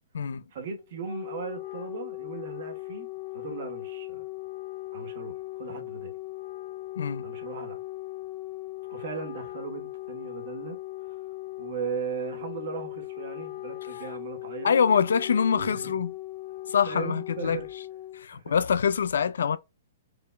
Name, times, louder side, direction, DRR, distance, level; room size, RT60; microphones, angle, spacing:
voice 1, 0.5-3.1 3.3-4.3 4.9-6.1 7.2-7.8 8.9-10.8 11.1-11.2 11.6-14.7 15.5-16.0 16.9-17.7 18.3-18.6, right 6 dB, 40° right, 1.0 m, -37 dB
Wind instrument woodwind instrument, 0.8-18.3, left 18 dB, 30° left, 0.9 m, -39 dB
voice 2, 14.6-16.1 16.7-17.6 18.1-19.6, left 7 dB, 85° left, 0.4 m, -24 dB
4.8 x 2.2 x 2.3 m
hypercardioid pair, 180°, 0 cm